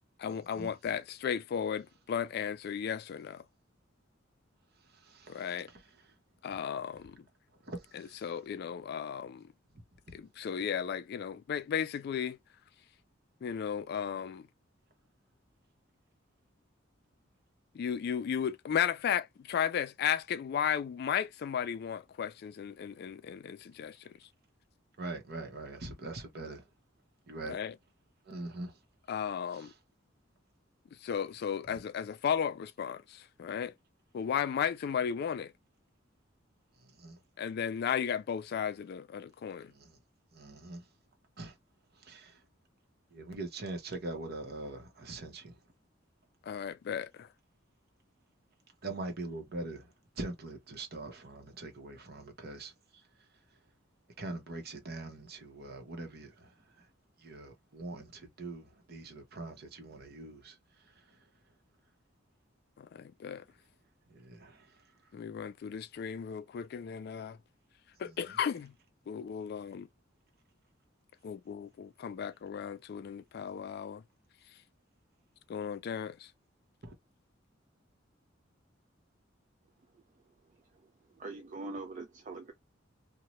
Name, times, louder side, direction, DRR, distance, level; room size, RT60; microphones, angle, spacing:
voice 1, 0.2-3.4 5.3-5.7 6.4-7.2 7.9-9.5 10.1-12.4 13.4-14.5 17.7-24.1 27.5-27.7 29.1-29.7 31.0-33.7 34.1-35.5 37.4-39.7 46.5-47.3 62.8-63.4 65.1-67.4 68.0-68.7 69.1-69.9 71.2-74.0 75.5-76.3, left 8 dB, 55° left, 0.3 m, -35 dB
voice 2, 4.9-5.8 7.6-8.2 25.0-26.7 27.3-27.6 28.3-28.7 29.5-29.7 36.8-37.2 39.7-40.0 40.3-40.8 41.4-41.5 42.0-42.4 43.1-45.6 48.8-49.9 50.2-53.0 54.2-56.5 56.8-56.9 57.2-60.6 64.1-64.7 68.0-68.4 76.8-76.9, right 2 dB, 55° right, 0.9 m, -43 dB
voice 3, 81.2-82.5, right 3 dB, 40° right, 0.4 m, -42 dB
2.7 x 2.2 x 3.0 m
head